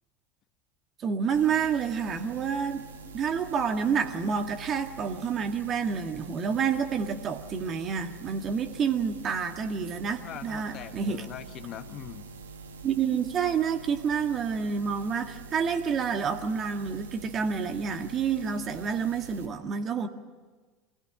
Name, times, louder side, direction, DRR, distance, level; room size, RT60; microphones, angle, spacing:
voice 1, 1.0-2.9 3.1-11.2 12.8-20.1, right 6 dB, 40° right, 1.8 m, -29 dB
sound 1, 1.3-19.5, right 4 dB, 80° right, 1.5 m, -45 dB
voice 2, 10.2-12.3, left 11 dB, 45° left, 1.2 m, -41 dB
25.0 x 16.5 x 10.0 m
hypercardioid pair, 75°, 0 cm